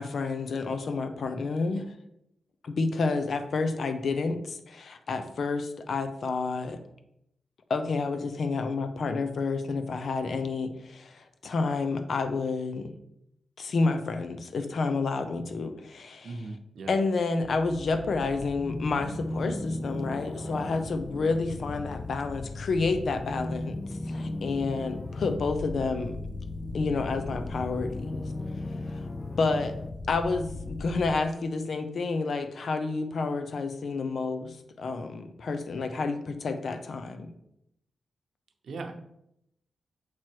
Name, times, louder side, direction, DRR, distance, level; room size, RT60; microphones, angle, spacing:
voice 1, 0.0-1.9 2.6-6.8 7.7-12.9 13.6-16.4 16.9-23.8 24.1-26.2 26.7-28.1 28.9-29.1 29.4-29.8 30.1-37.3, left 4 dB, 60° left, 8 dB, 0.6 m, -29 dB
voice 2, 16.2-16.9 38.6-38.9, right 3 dB, 75° right, 5 dB, 0.8 m, -38 dB
sound 1, 17.4-31.2, left 2 dB, 25° left, 0.3 m, -36 dB
7.6 x 3.0 x 4.6 m, 0.80 s
wide cardioid pair, 105°, 0 cm